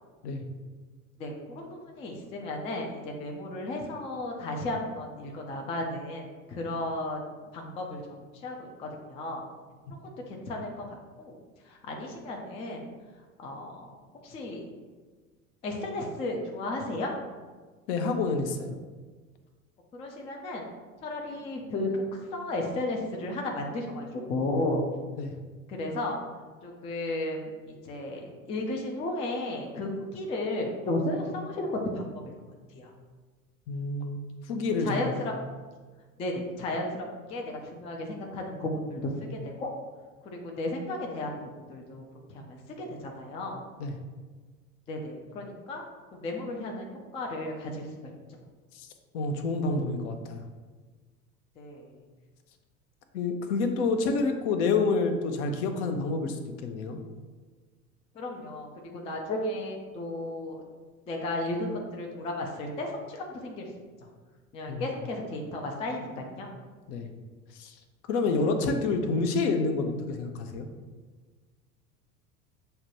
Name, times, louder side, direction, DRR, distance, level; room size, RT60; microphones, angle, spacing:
voice 1, 1.2-8.0 8.4-9.4 10.0-11.4 11.6-12.9 13.4-13.9 14.2-14.6 15.6-17.1 19.9-20.6 21.0-24.8 25.7-26.2 26.6-32.3 32.7-32.9 34.8-35.3 36.2-39.7 40.2-42.0 42.3-43.6 44.9-45.8 46.1-48.1 51.6-52.0 58.1-60.6 61.1-63.7 64.0-64.1 64.5-66.5 68.3-68.4, left 1 dB, 15° left, 1 dB, 0.3 m, -34 dB
voice 2, 17.9-18.7 25.2-25.3 33.7-34.2 34.5-35.2 43.8-43.9 48.7-48.9 49.1-50.4 53.1-57.0 64.7-64.9 66.9-67.2 67.5-67.7 68.1-70.7, left 3 dB, 50° left, 5 dB, 0.6 m, -28 dB
6.5 x 2.2 x 2.8 m, 1.4 s
figure-of-eight pair, 80°, 43 cm